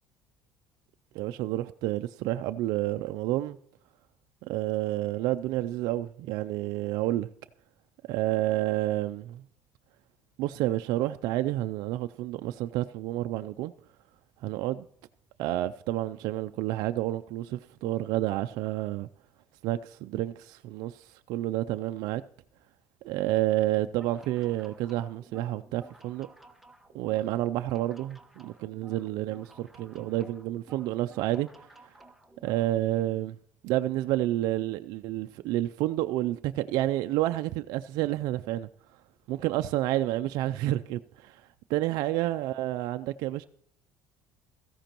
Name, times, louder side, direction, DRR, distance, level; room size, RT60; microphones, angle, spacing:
voice 1, 1.1-3.6 4.4-7.3 8.1-9.4 10.4-13.7 14.4-14.8 15.4-19.1 19.6-22.2 23.0-26.3 26.9-31.5 32.4-33.4 33.6-38.7 39.3-43.4, right 15 dB, 70° right, 0.4 m, -29 dB
sound 1, 23.9-32.7, right 2 dB, 5° right, 1.2 m, -55 dB
16.5 x 14.0 x 3.0 m
supercardioid pair, 90°, 7 cm